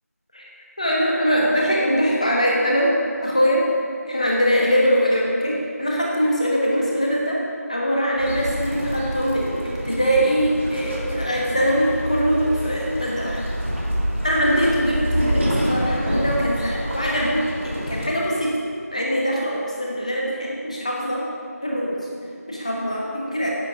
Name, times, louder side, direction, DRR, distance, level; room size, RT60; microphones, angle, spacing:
voice 1, 0.8-2.9 3.2-3.6 4.1-7.4 7.7-13.4 14.2-18.5 18.9-21.2 21.6-21.9 22.5-23.5, equal, 25° left, -3 dB, 1.3 m, -22 dB
sound 1, 8.2-18.1, equal, 50° right, 2.8 m, -27 dB
10.5 x 9.9 x 4.8 m, 2.2 s
figure-of-eight pair, 175°, 9 cm